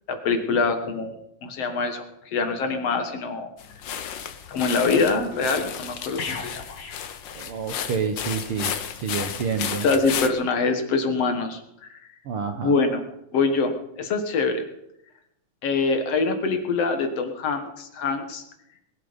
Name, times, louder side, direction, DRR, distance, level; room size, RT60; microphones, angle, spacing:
voice 1, 0.1-1.2 1.4-2.0 2.3-3.5 4.5-6.8 9.8-11.6 11.9-12.0 12.6-13.0 13.3-14.6 15.6-18.4, left 4 dB, 60° left, 6 dB, 2.4 m, -24 dB
sound 1, 3.6-10.3, left 9 dB, 80° left, 1.0 m, -33 dB
sound 2, 6.2-8.1 8.4-8.6, left 4 dB, 40° left, 2.0 m, -38 dB
voice 2, 7.3-9.8 12.2-12.8, right 6 dB, 60° right, 6 dB, 1.6 m, -28 dB
20.5 x 11.5 x 5.2 m, 0.79 s
omnidirectional pair, 3.4 m